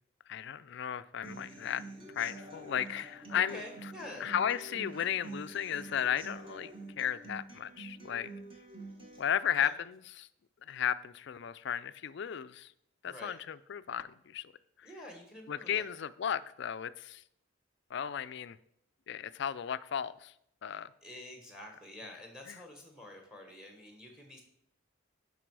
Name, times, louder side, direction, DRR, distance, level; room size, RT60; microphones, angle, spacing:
voice 1, 0.3-1.8 2.2-3.6 4.2-6.7 7.0-8.3 9.2-10.3 10.7-12.7 13.0-14.5 14.8-14.9 15.5-17.2 17.9-18.6 19.1-20.3 20.6-20.9 22.5-22.6, left 9 dB, 55° left, 15 dB, 0.3 m, -34 dB
Human voice / Acoustic guitar, 1.2-9.2, right 2 dB, 25° right, 1.2 m, -47 dB
voice 2, 3.3-4.3 9.6-9.7 13.0-13.4 14.8-15.8 20.7-24.4, left 1 dB, 5° right, 3 dB, 1.2 m, -48 dB
10.0 x 5.4 x 4.7 m, 0.74 s
head